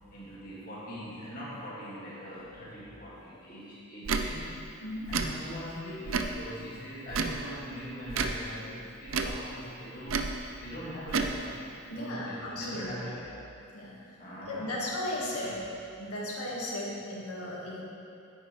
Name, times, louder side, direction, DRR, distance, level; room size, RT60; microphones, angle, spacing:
voice 1, 0.1-4.6 5.1-13.3 13.9-14.8 15.2-15.6, equal, 40° left, -8 dB, 2.3 m, -42 dB
Tick / Tick-tock, 4.0-4.3 5.1-5.3 6.1-6.4 7.1-7.4 8.1-8.4 9.1-9.4 10.1-10.3 11.1-11.3, right 5 dB, 65° right, 0.5 m, -30 dB
voice 2, 11.9-12.9 13.7-13.9 14.5-15.6 16.0-17.8, left 1 dB, 85° left, -5 dB, 1.8 m, -35 dB
9.6 x 9.5 x 3.3 m, 2.7 s
head